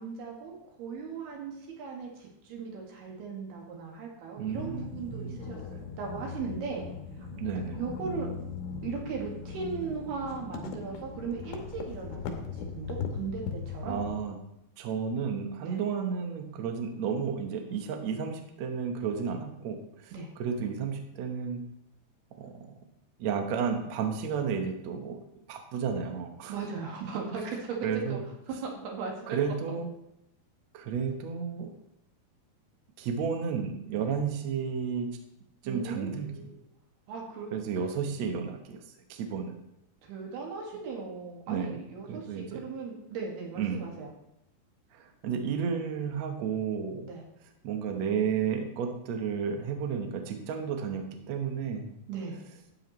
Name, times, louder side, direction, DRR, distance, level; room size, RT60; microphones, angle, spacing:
voice 1, 0.0-6.8 7.7-8.3 8.8-14.0 15.6-15.8 20.1-20.3 26.5-28.2 28.6-29.4 33.9-34.0 35.6-36.5 37.1-37.6 40.0-44.1 47.1-47.2 52.1-52.4, right 5 dB, 65° right, 0 dB, 3.8 m, -38 dB
voice 2, 4.4-5.4 7.4-7.8 13.8-14.4 14.8-21.6 22.4-22.7 23.2-25.2 25.5-26.5 27.8-28.2 29.3-29.9 30.7-31.8 33.0-35.1 35.6-36.3 37.5-38.8 39.1-39.5 41.5-41.8 42.1-42.6 43.6-43.8 44.9-47.1 47.6-51.9, right 6 dB, 85° right, 4 dB, 1.5 m, -32 dB
sound 1, 4.5-14.2, left 5 dB, 85° left, 3.4 m, -39 dB
12.5 x 9.1 x 3.2 m, 0.83 s
omnidirectional pair, 5.0 m